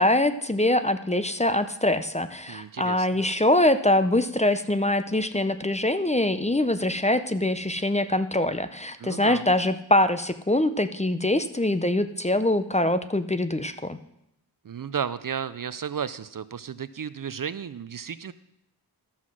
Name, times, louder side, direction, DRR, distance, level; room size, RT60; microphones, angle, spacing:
voice 1, 0.0-14.0, left 1 dB, 15° left, 10 dB, 0.5 m, -23 dB
voice 2, 2.5-3.2 9.0-9.5 14.6-18.3, right 7 dB, 55° right, 15 dB, 0.4 m, -33 dB
13.5 x 5.7 x 6.2 m, 0.79 s
wide cardioid pair, 55°, 41 cm